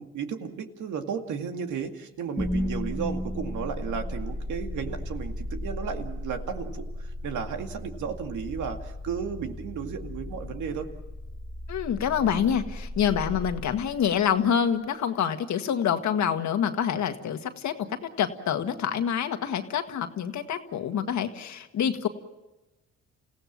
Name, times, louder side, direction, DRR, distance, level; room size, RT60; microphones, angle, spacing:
voice 1, 0.0-6.9 7.2-10.9, right 6 dB, 75° right, 5 dB, 2.2 m, -34 dB
sound 1, 2.4-14.5, left 1 dB, 5° left, 1.3 m, -35 dB
voice 2, 11.7-22.1, left 8 dB, 70° left, 7 dB, 1.8 m, -27 dB
28.5 x 16.5 x 7.4 m, 1.0 s
cardioid pair, 90°, 30 cm